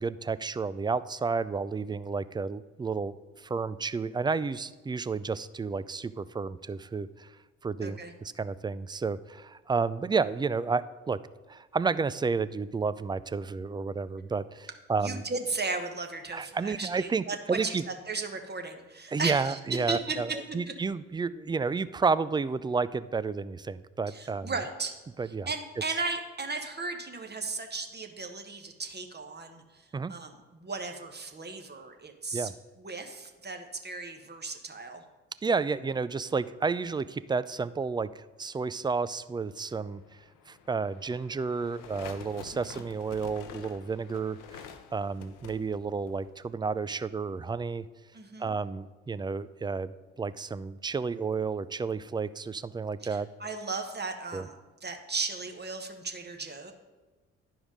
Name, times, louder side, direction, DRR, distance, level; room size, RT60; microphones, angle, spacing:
voice 1, 0.0-7.3 7.6-8.0 8.4-11.2 11.5-15.2 16.3-17.8 19.1-20.3 20.5-24.5 25.2-25.5 29.9-30.1 32.3-32.5 35.4-40.0 40.5-44.4 44.9-47.9 48.4-49.9 50.2-53.3 54.3-54.5, right 4 dB, 15° right, 16 dB, 0.3 m, -31 dB
voice 2, 7.8-8.1 15.0-17.8 18.1-20.7 24.1-24.9 25.2-32.5 32.8-35.0 42.7-42.9 48.1-48.5 53.0-54.5 54.8-56.7, right 3 dB, 30° right, 5 dB, 1.3 m, -36 dB
sound 1, 39.7-46.5, left 7 dB, 65° left, 0.8 m, -49 dB
11.0 x 5.0 x 5.1 m, 1.2 s
hypercardioid pair, 40°, 34 cm